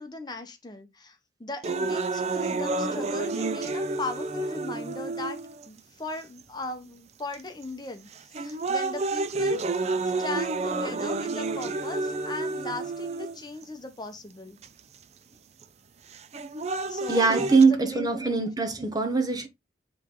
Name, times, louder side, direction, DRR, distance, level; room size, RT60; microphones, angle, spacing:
voice 1, 0.0-5.4 5.7-14.6 16.9-17.2 17.5-18.5, left 2 dB, 25° left, 1.0 m, -38 dB
sound 1, 1.6-5.7 6.4-6.5 7.3-7.6 8.1-13.6 14.6-14.7 16.1-17.6, right 3 dB, 35° right, 0.5 m, -30 dB
voice 2, 17.1-19.5, right 4 dB, 20° right, 0.9 m, -22 dB
8.3 x 3.3 x 3.8 m
head